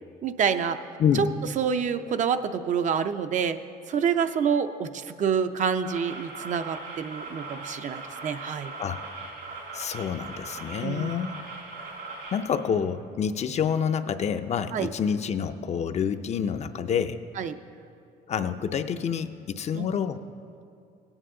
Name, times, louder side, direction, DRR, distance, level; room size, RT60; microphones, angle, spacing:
voice 1, 0.2-0.8 1.1-1.3 1.6-3.6 3.9-8.8 10.8-11.1 14.7-14.9 17.4-17.6 19.7-19.9, right 7 dB, 45° right, 9 dB, 0.5 m, -27 dB
sound 1, 5.8-12.4, right 3 dB, 75° right, 2.8 m, -40 dB
voice 2, 9.7-11.4 12.3-17.2 18.3-20.2, left 7 dB, 40° left, 9 dB, 0.5 m, -28 dB
16.5 x 9.0 x 3.8 m, 2.4 s
cardioid pair, 110°, 17 cm